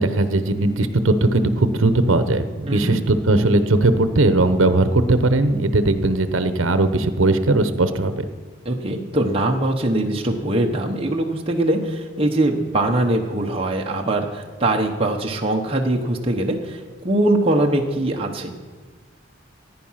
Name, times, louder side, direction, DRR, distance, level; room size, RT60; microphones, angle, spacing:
voice 1, 0.0-8.3, right 2 dB, 75° right, 11 dB, 0.9 m, -18 dB
voice 2, 2.7-3.0 8.6-18.5, right 1 dB, 30° right, 0 dB, 1.1 m, -22 dB
16.0 x 9.5 x 5.8 m, 1.4 s
head